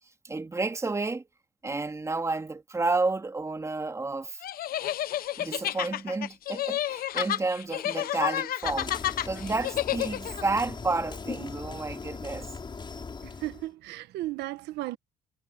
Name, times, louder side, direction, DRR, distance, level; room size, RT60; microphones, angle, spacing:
voice 1, 0.2-1.2 1.6-4.4 5.4-12.5, right 3 dB, 15° right, 2.5 m, -31 dB
sound 1, 4.4-10.4, left 12 dB, 60° left, 0.9 m, -30 dB
sound 2, 8.6-13.7, left 4 dB, 30° left, 6.5 m, -39 dB
voice 2, 13.2-15.0, right 16 dB, 80° right, 1.5 m, -35 dB
cardioid pair, 110°, 17 cm